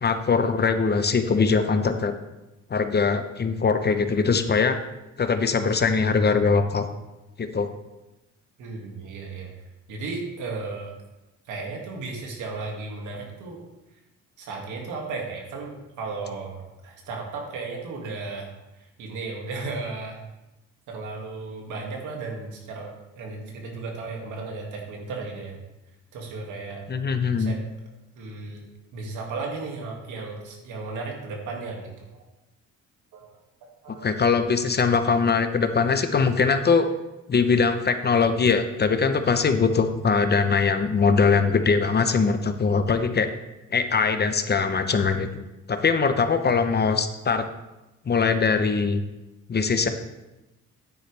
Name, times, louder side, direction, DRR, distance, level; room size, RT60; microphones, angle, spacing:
voice 1, 0.0-2.1 2.7-4.8 5.2-6.8 7.4-7.7 26.9-27.6 34.0-36.9 37.3-43.3 43.7-47.5 48.1-49.0 49.5-49.9, left 5 dB, 35° left, 9 dB, 0.8 m, -22 dB
voice 2, 8.6-9.5 9.9-10.9 11.5-13.6 14.4-20.2 20.9-22.9 23.2-25.6 26.1-26.8 27.4-27.6 28.2-28.6 28.9-32.2 33.1-33.3 33.6-34.1, right 3 dB, 85° right, 0 dB, 2.2 m, -35 dB
9.7 x 9.5 x 3.4 m, 1.0 s
cardioid pair, 90°, 30 cm